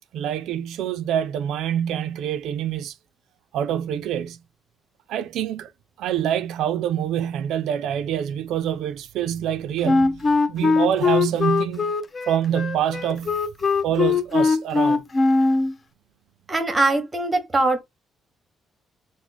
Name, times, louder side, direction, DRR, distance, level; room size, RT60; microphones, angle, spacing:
voice 1, 0.1-2.9 3.5-4.4 5.1-5.7 6.0-11.9 12.3-13.4 13.8-15.0, right 10 dB, 90° right, 0.3 m, -26 dB
Wind instrument woodwind instrument, 9.8-15.7, left 4 dB, 25° left, 0.4 m, -21 dB
voice 2, 16.5-17.8, right 2 dB, 15° right, 0.8 m, -21 dB
3.0 x 2.0 x 3.9 m
cardioid pair, 155°, 0 cm